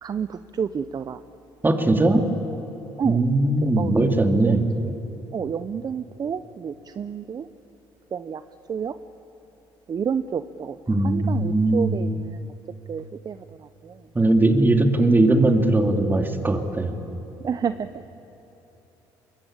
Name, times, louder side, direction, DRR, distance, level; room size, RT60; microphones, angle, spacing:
voice 1, 0.0-1.2 3.0-3.2 3.6-3.9 4.4-4.5 5.3-7.5 8.1-8.4 8.7-8.9 9.9-10.8 11.0-12.5 12.9-13.4 13.8-14.0 17.4-18.0, right 7 dB, 40° right, 12 dB, 0.7 m, -29 dB
voice 2, 1.6-2.2 3.0-4.7 10.9-12.0 14.1-16.9, right 2 dB, 20° right, 4 dB, 2.7 m, -19 dB
23.0 x 21.0 x 8.9 m, 3.0 s
supercardioid pair, 75°, 10 cm